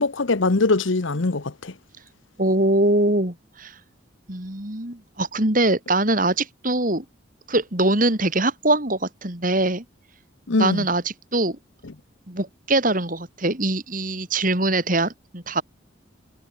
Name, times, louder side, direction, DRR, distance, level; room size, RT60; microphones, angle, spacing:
voice 1, 0.0-1.7 10.5-10.8, left 3 dB, 70° left, 1.0 m, -22 dB
voice 2, 2.4-3.7 4.3-7.0 7.5-9.8 10.6-11.0 11.3-11.6 12.3-15.6, right 2 dB, 40° right, 3.3 m, -22 dB
head